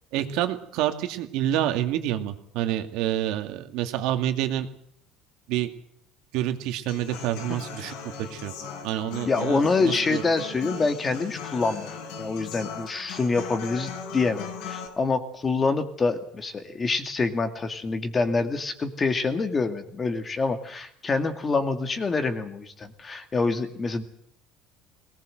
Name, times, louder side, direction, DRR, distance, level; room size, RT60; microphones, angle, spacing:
voice 1, 0.1-4.7 5.5-5.7 6.3-8.5 8.8-10.2, right 12 dB, 70° right, 7 dB, 2.4 m, -28 dB
Human voice / Acoustic guitar, 6.9-14.9, left 5 dB, 75° left, 5.1 m, -38 dB
voice 2, 9.2-11.9 12.2-24.0, left 4 dB, 20° left, 8 dB, 2.1 m, -26 dB
22.5 x 19.0 x 7.8 m, 0.68 s
cardioid pair, 145°, 0 cm